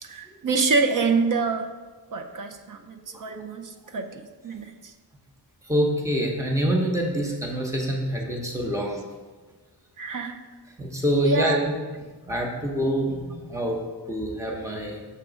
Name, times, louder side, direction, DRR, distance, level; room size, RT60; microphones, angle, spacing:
voice 1, 0.0-1.7 2.1-4.9 10.0-10.4 11.2-11.7, right 4 dB, 50° right, 6 dB, 0.6 m, -26 dB
voice 2, 5.7-9.0 10.8-11.6 12.3-13.8 14.1-15.0, equal, 5° right, 0 dB, 0.8 m, -25 dB
6.8 x 3.7 x 5.0 m, 1.3 s
wide cardioid pair, 165°, 41 cm